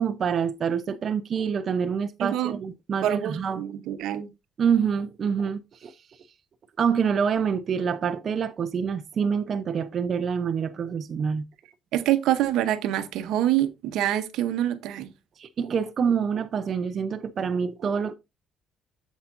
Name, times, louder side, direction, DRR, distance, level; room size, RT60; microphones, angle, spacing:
voice 1, 0.0-3.6 4.6-5.9 6.8-11.4 15.4-18.1, right 6 dB, 45° right, 0.6 m, -26 dB
voice 2, 2.2-2.6 3.0-4.3 11.9-15.1, right 12 dB, 90° right, 0.8 m, -26 dB
8.1 x 7.2 x 2.6 m
cardioid pair, 125°, 0 cm